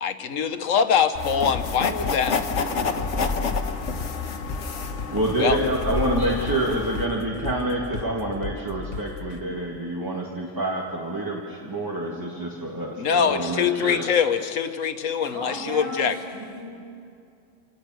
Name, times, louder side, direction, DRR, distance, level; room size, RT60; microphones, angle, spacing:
voice 1, 0.0-2.4 5.4-5.6 13.0-16.2, left 7 dB, 80° left, 9 dB, 1.4 m, -23 dB
sound 1, 1.1-6.5, left 3 dB, 35° left, 1.6 m, -34 dB
sound 2, 1.2-7.1, left 5 dB, 65° left, 1.4 m, -30 dB
sound 3, 1.5-9.4, left 4 dB, 50° left, 1.1 m, -35 dB
voice 2, 5.1-14.1, right 1 dB, 15° right, -2 dB, 1.8 m, -27 dB
voice 3, 15.2-16.7, equal, 50° right, -3 dB, 5.9 m, -35 dB
27.5 x 18.5 x 6.3 m, 2.4 s
omnidirectional pair, 1.3 m